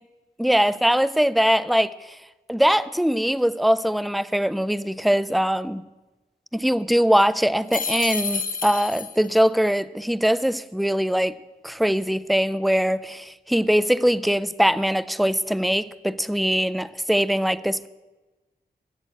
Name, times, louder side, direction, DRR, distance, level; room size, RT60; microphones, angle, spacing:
voice 1, 0.4-1.9 2.5-5.8 6.5-11.3 11.6-17.9, equal, ahead, 16 dB, 0.4 m, -22 dB
sound 1, 7.7-9.4, left 4 dB, 55° left, 1.1 m, -29 dB
13.0 x 7.6 x 7.9 m, 1.2 s
wide cardioid pair, 110°, 16 cm